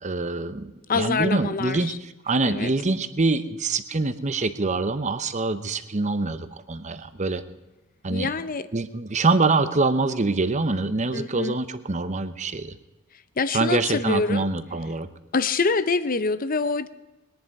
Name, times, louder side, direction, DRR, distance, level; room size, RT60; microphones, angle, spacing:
voice 1, 0.0-7.4 8.0-8.3 8.7-12.8 13.5-15.1, right 3 dB, 35° right, 11 dB, 0.8 m, -25 dB
voice 2, 0.9-2.0 2.4-2.7 8.1-8.7 11.1-11.6 13.4-14.5 15.3-16.9, left 4 dB, 40° left, 14 dB, 0.6 m, -25 dB
21.0 x 10.5 x 4.7 m, 1.1 s
head